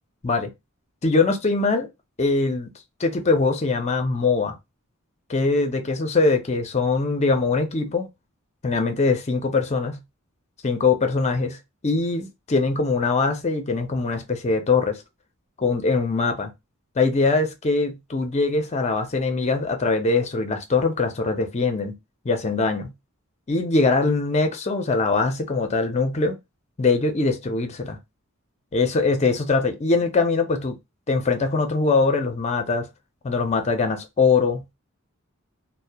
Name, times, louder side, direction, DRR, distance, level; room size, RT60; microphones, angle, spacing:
voice 1, 1.0-1.9 2.2-2.7 3.0-4.6 5.3-8.1 8.6-10.0 10.6-11.6 11.8-15.0 15.6-16.5 17.0-21.9 22.2-22.9 23.5-26.3 26.8-28.0 28.7-30.8 31.1-32.9 33.2-34.7, left 3 dB, 30° left, 0.5 m, -22 dB
2.7 x 2.0 x 2.2 m
head